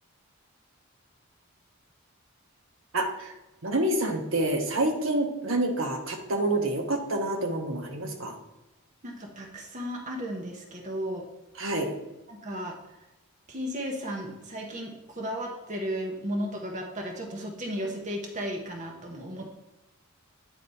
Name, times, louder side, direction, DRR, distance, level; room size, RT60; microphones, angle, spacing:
voice 1, 2.9-3.3 3.6-8.3 11.6-11.9, right 1 dB, 65° right, 4 dB, 0.9 m, -27 dB
voice 2, 9.0-11.3 12.3-12.8 13.5-19.5, equal, 35° right, 1 dB, 0.7 m, -34 dB
8.9 x 3.3 x 4.0 m, 1.0 s
head